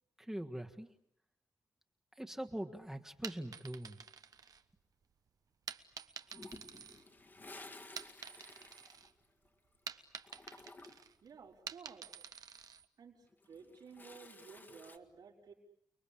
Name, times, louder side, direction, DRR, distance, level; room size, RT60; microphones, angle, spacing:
voice 1, 0.2-0.9 2.2-4.0, right 1 dB, 5° right, 3 dB, 1.5 m, -42 dB
sound 1, 3.1-5.0 5.7-7.5 7.8-9.1 9.4-12.9, right 6 dB, 60° right, 1.2 m, -49 dB
Toilet flush, 6.3-9.8 10.0-11.2 13.2-15.0, left 2 dB, 25° left, 1.7 m, -54 dB
voice 2, 11.2-12.2 13.0-15.5, right 5 dB, 80° right, -1 dB, 5.4 m, -55 dB
30.0 x 21.5 x 8.7 m, 0.74 s
wide cardioid pair, 135°, 7 cm